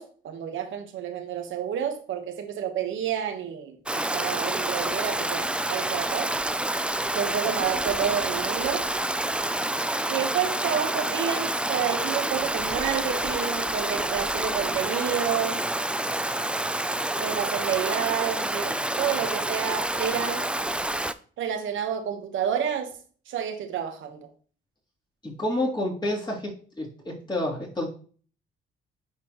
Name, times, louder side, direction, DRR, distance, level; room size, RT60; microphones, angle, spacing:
voice 1, 0.0-6.3 7.1-8.9 10.1-15.6 17.2-20.5 21.4-23.0 23.3-24.3, right 8 dB, 75° right, 1.3 m, -29 dB
Stream, 3.9-21.1, right 1 dB, 5° right, 0.4 m, -28 dB
voice 2, 25.2-27.9, left 1 dB, 20° left, 3.1 m, -29 dB
9.9 x 4.4 x 3.0 m
cardioid pair, 90°, 20 cm